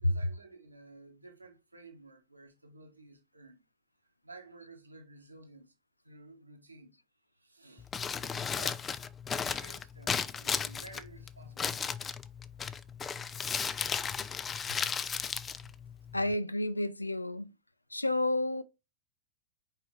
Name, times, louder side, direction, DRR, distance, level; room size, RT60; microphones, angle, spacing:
voice 1, 0.0-3.6 4.2-5.7 6.0-7.0 7.3-7.9 8.3-8.9 9.3-12.1 15.5-15.6, right 3 dB, 85° right, 1.4 m, -53 dB
Crumpling crinkling, 7.8-16.3, left 6 dB, 20° left, 0.4 m, -35 dB
voice 2, 16.1-17.5 17.9-18.6, left 1 dB, 85° left, 0.4 m, -30 dB
5.5 x 4.7 x 4.4 m
figure-of-eight pair, 90°, 0 cm